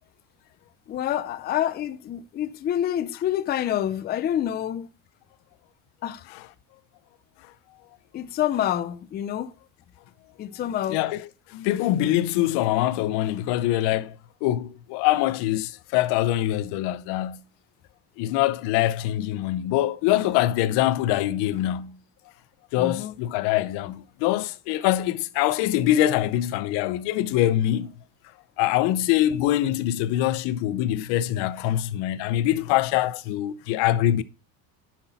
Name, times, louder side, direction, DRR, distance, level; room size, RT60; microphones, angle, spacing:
voice 1, 0.9-4.9 6.0-6.2 8.1-9.5 10.4-11.0 22.8-23.1, left 11 dB, 25° left, 0.4 m, -27 dB
voice 2, 10.9-17.4 18.2-22.0 22.7-27.9 28.6-34.2, left 13 dB, 65° left, 0.7 m, -24 dB
9.8 x 6.2 x 4.0 m
cardioid pair, 135°, 44 cm